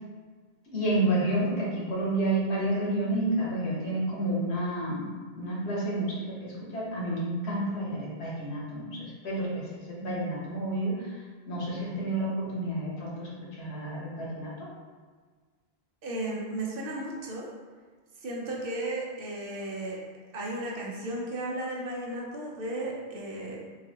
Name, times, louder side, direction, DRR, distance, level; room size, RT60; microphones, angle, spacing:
voice 1, 0.7-5.0 5.3-11.2 11.5-14.7, right 1 dB, 90° left, -5 dB, 1.3 m, -30 dB
voice 2, 16.0-17.5 18.2-20.0 20.3-23.6, right 1 dB, 65° right, -2 dB, 0.8 m, -34 dB
3.9 x 2.4 x 2.8 m, 1.5 s
omnidirectional pair, 1.1 m